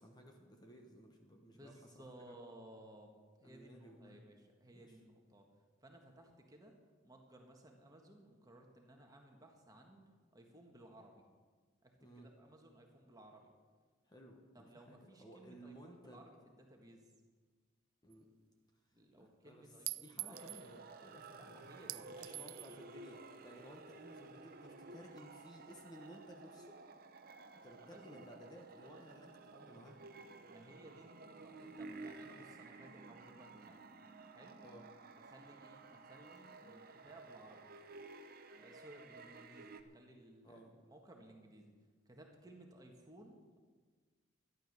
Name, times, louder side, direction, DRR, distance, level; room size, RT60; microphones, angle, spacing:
voice 1, 0.0-2.3 3.4-4.2 4.7-5.0 12.0-12.3 14.0-16.2 18.0-18.3 19.2-26.8 27.5-30.0 34.6-34.9 40.4-40.7, equal, 20° left, 2 dB, 1.2 m, -57 dB
voice 2, 1.5-3.1 3.4-5.5 5.8-6.7 7.0-10.0 10.3-11.2 11.8-13.5 14.5-17.1 18.9-20.8 21.4-22.9 27.8-28.2 30.5-33.8 34.3-34.6 35.1-37.7 38.6-41.7 42.0-43.6, right 1 dB, 20° right, 2 dB, 1.6 m, -59 dB
Chink clink, 18.1-18.2 19.9-20.7 21.9-22.8, right 20 dB, 80° right, 0.3 m, -44 dB
sound 1, 20.3-39.8, right 3 dB, 45° right, 0.8 m, -54 dB
13.0 x 11.0 x 6.7 m, 1.5 s
head